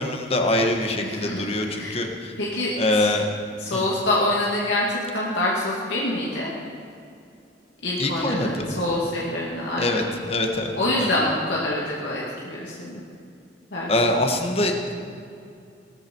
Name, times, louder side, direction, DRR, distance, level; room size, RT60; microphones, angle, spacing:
voice 1, 0.0-2.3 2.8-3.3 3.7-3.9 8.0-8.8 9.8-10.7 11.0-11.1 13.9-14.8, left 1 dB, 35° left, 3 dB, 1.5 m, -24 dB
voice 2, 1.0-2.0 2.4-3.1 3.6-6.5 7.8-10.1 10.8-13.0 13.7-13.9, left 1 dB, 75° left, -5 dB, 2.3 m, -26 dB
18.5 x 14.5 x 4.6 m, 2.5 s
head